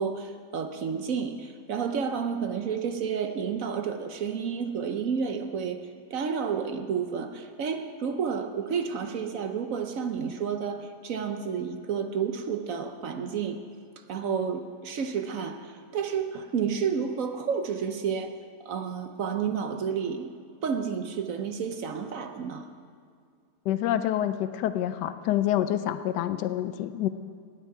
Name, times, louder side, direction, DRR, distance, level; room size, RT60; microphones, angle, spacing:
voice 1, 0.0-5.8 6.1-13.6 14.1-18.3 18.6-20.3 20.6-22.7, right 6 dB, 60° right, 7 dB, 1.1 m, -30 dB
voice 2, 23.7-27.1, left 12 dB, 90° left, 11 dB, 1.2 m, -27 dB
17.0 x 9.2 x 4.7 m, 2.2 s
omnidirectional pair, 1.8 m